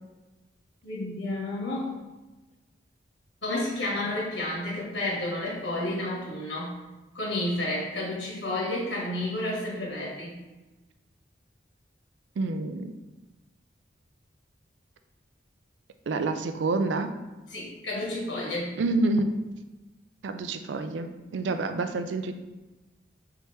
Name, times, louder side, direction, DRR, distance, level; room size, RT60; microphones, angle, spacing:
voice 1, 0.8-1.9 3.4-6.7 7.1-10.3 17.5-18.7, left 1 dB, 80° left, -4 dB, 1.3 m, -31 dB
voice 2, 12.4-12.9 16.1-17.1 18.8-19.3 20.2-22.3, right 3 dB, 80° right, 8 dB, 0.4 m, -28 dB
4.6 x 2.9 x 3.2 m, 1.1 s
head